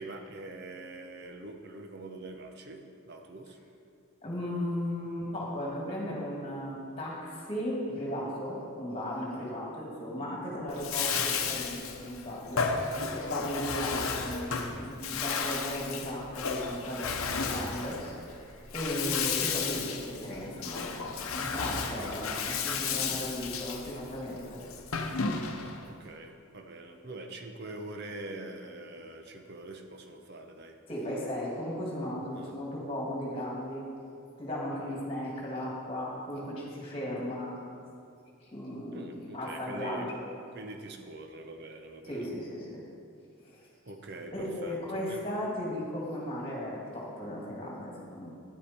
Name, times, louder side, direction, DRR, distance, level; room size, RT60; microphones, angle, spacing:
voice 1, 0.0-3.6 10.2-10.5 25.6-30.8 32.3-32.5 38.9-40.1 40.5-42.3 43.9-45.2, right 2 dB, 50° right, 5 dB, 0.8 m, -44 dB
voice 2, 4.2-12.6 12.9-24.6 30.9-33.9 34.4-37.6 38.4-40.2 42.1-42.8 43.4-43.6 44.3-48.3, equal, 25° left, -4 dB, 2.2 m, -36 dB
Bathtub (filling or washing), 10.7-25.8, left 5 dB, 80° left, 0.8 m, -33 dB
10.0 x 8.4 x 4.4 m, 2.4 s
head